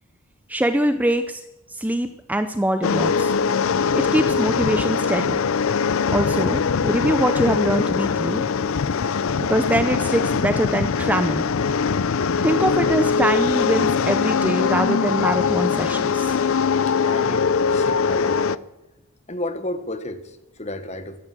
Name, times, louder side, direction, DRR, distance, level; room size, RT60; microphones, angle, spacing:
voice 1, 0.5-1.4 1.7-3.4 3.9-5.4 6.1-8.4 9.4-11.5 12.4-16.4, right 1 dB, 5° right, 9 dB, 0.6 m, -23 dB
sound 1, 2.8-18.6, left 5 dB, 65° left, 0.5 m, -22 dB
voice 2, 16.9-18.6 19.3-21.2, left 1 dB, 30° left, 10 dB, 1.4 m, -32 dB
15.0 x 12.5 x 7.4 m, 1.0 s
head